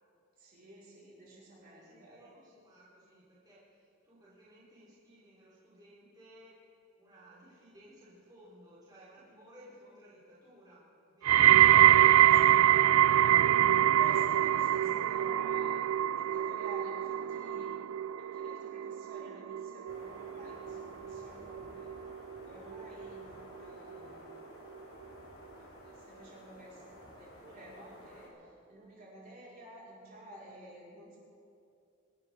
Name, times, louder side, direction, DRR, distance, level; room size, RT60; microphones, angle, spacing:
voice 1, 0.4-2.2 11.3-11.5 11.9-12.6 13.7-15.8 16.1-17.7 18.2-21.9 22.3-24.5 25.5-31.2, right 1 dB, 45° right, -7 dB, 5.1 m, -52 dB
voice 2, 1.6-6.5 7.0-11.5 12.0-12.9, equal, 20° right, -9 dB, 4.4 m, -58 dB
sound 1, 11.3-22.4 22.7-23.2 23.9-24.0, right 12 dB, 80° right, 0.3 m, -25 dB
sound 2, 19.9-28.3, left 1 dB, 75° left, 4.2 m, -52 dB
26.5 x 13.0 x 3.8 m, 2.6 s
head